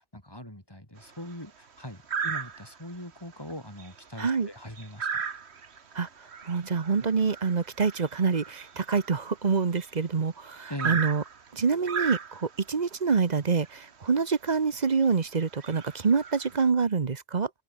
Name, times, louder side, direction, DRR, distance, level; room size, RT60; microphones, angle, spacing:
voice 1, 0.0-5.2 10.7-11.0, left 1 dB, 20° left, 5.9 m, -41 dB
sound 1, 1.0-1.3 2.1-2.9 3.3-3.5 3.8-10.1 10.8-12.7 13.7-13.8 14.2-14.3 14.9-15.1 15.5-16.7, right 6 dB, 65° right, 1.6 m, -36 dB
voice 2, 4.2-4.5 5.9-6.1 6.5-11.2 11.5-17.5, right 5 dB, 40° right, 1.1 m, -26 dB
open air
omnidirectional pair, 1.2 m